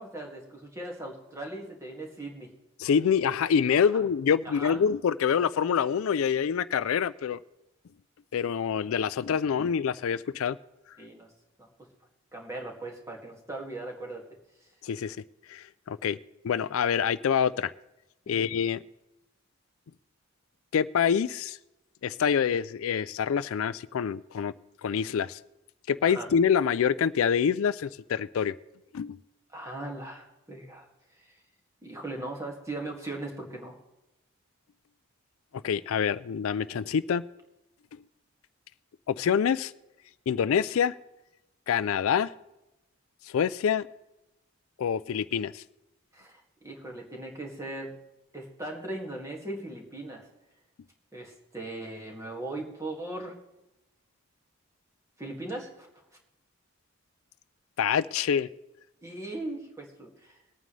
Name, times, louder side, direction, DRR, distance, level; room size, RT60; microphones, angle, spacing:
voice 1, 0.0-2.5 4.4-4.8 11.0-11.3 11.6-11.7 12.3-14.2 14.6-14.7 18.3-18.4 26.0-26.3 29.5-30.9 31.2-31.4 31.8-33.8 46.1-47.9 48.3-50.3 51.1-53.3 55.2-55.9 59.0-60.4, right 2 dB, 15° right, -1 dB, 2.1 m, -39 dB
voice 2, 2.8-7.4 8.3-10.6 14.8-15.2 15.5-16.2 16.4-17.7 18.3-18.8 20.7-21.6 22.0-24.5 24.8-25.4 25.9-28.5 28.9-29.2 35.6-37.2 39.1-39.7 40.3-40.9 41.7-42.3 43.2-43.9 44.8-45.6 57.8-58.5, left 7 dB, 75° left, 16 dB, 0.4 m, -26 dB
22.0 x 9.1 x 3.3 m, 0.95 s
head